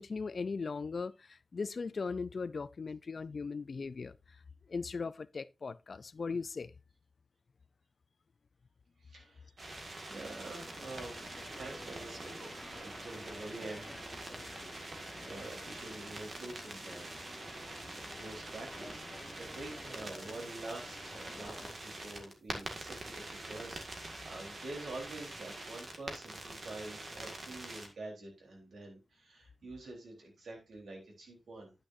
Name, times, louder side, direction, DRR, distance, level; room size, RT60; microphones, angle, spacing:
voice 1, 0.0-4.4 4.7-6.7, left 4 dB, 45° left, 0.4 m, -38 dB
voice 2, 9.0-11.3 11.5-14.5 14.8-19.1 19.4-31.7, right 2 dB, 80° right, 3.7 m, -47 dB
sound 1, 9.6-27.9, right 2 dB, 40° right, 1.9 m, -45 dB
sound 2, 10.6-21.7, left 2 dB, 25° left, 1.2 m, -52 dB
9.8 x 8.9 x 2.6 m
wide cardioid pair, 155°, 0 cm